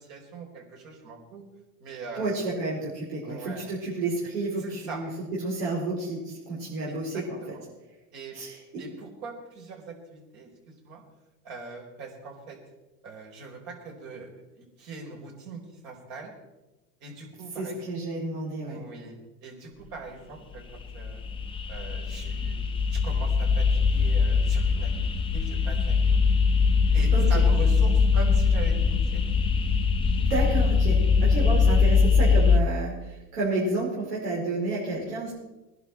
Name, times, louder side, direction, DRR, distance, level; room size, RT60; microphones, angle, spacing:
voice 1, 0.0-1.4 1.8-2.4 3.2-3.7 4.6-5.0 6.9-7.6 8.1-8.4 8.8-11.0 11.4-12.6 13.0-14.3 14.6-16.3 17.0-17.8 18.6-20.6 20.9-21.2 21.7-22.6 22.9-26.2 26.9-29.2 31.3-31.5, right 3 dB, 50° right, 1 dB, 4.9 m, -41 dB
voice 2, 2.2-5.1 5.4-7.5 8.3-8.9 17.6-18.8 27.1-27.4 30.3-35.3, right 2 dB, 80° right, -6 dB, 5.1 m, -31 dB
sound 1, 20.6-32.6, left 5 dB, 10° left, 0.9 m, -22 dB
20.5 x 11.0 x 4.5 m, 1.0 s
supercardioid pair, 125°, 45 cm